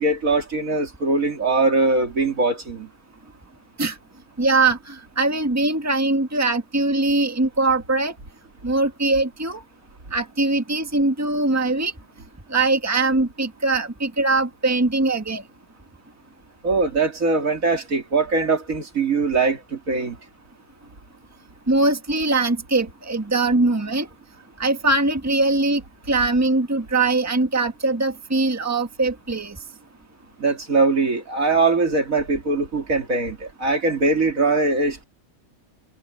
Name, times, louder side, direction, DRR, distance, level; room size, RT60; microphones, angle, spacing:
voice 1, 0.0-2.9 16.6-20.2 30.4-35.0, right 3 dB, 75° right, 3.1 m, -21 dB
voice 2, 4.4-8.1 8.6-9.6 10.1-11.9 12.5-15.4 21.7-24.1 24.6-25.8 26.1-29.6, right 2 dB, 10° right, 1.6 m, -21 dB
omnidirectional pair, 1.5 m